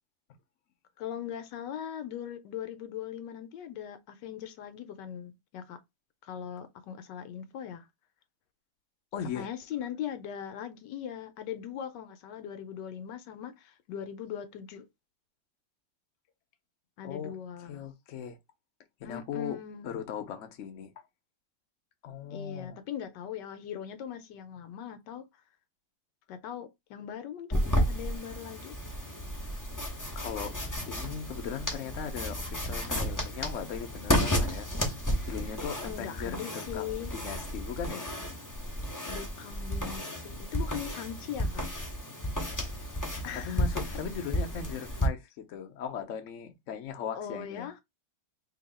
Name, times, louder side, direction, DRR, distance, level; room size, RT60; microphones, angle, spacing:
voice 1, 1.0-5.8 6.2-7.9 9.3-14.9 17.0-17.8 19.0-19.9 22.3-25.3 26.3-28.8 35.8-37.1 39.0-41.7 43.2-44.0 47.1-47.8, left 9 dB, 75° left, 1.2 m, -40 dB
voice 2, 9.1-9.5 17.0-17.3 17.7-18.4 19.0-19.6 19.8-20.9 22.0-22.8 30.2-30.5 30.9-34.7 35.2-38.1 43.3-47.7, left 7 dB, 60° left, 0.9 m, -38 dB
sound 1, 27.5-45.1, equal, 15° left, 0.6 m, -32 dB
3.0 x 2.8 x 4.0 m
omnidirectional pair, 2.0 m